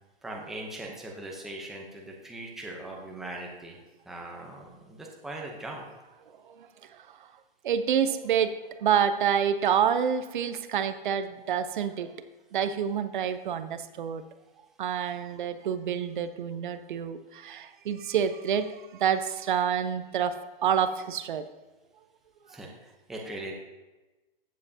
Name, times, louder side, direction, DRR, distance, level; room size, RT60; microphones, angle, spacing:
voice 1, 0.2-3.8 4.1-5.8 22.5-23.5, right 1 dB, ahead, -1 dB, 0.7 m, -40 dB
voice 2, 7.6-12.1 12.5-14.2 14.8-21.5, right 8 dB, 55° right, 10 dB, 0.7 m, -28 dB
14.5 x 7.6 x 2.8 m, 1.1 s
hypercardioid pair, 160°, 29 cm